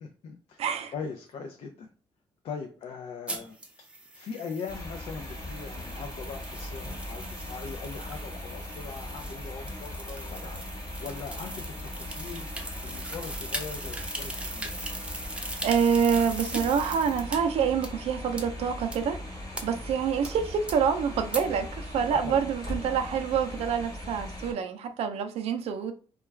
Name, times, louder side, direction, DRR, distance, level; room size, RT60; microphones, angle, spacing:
voice 1, 0.0-1.9 2.4-3.6 4.1-12.5 12.8-14.8 22.1-22.5, left 5 dB, 70° left, 0.4 m, -40 dB
voice 2, 0.6-0.9 15.6-19.2 19.6-25.9, right 7 dB, 85° right, 0.4 m, -27 dB
sound 1, 3.3-17.4 17.8-17.9 18.4-18.5 18.9-19.0 19.5-19.6 20.2-20.3 20.7-20.8 21.3-21.4, right 1 dB, 10° right, 0.5 m, -39 dB
sound 2, 4.7-24.5, left 1 dB, 35° left, 1.1 m, -39 dB
2.3 x 2.2 x 3.2 m
cardioid pair, 105°, 10 cm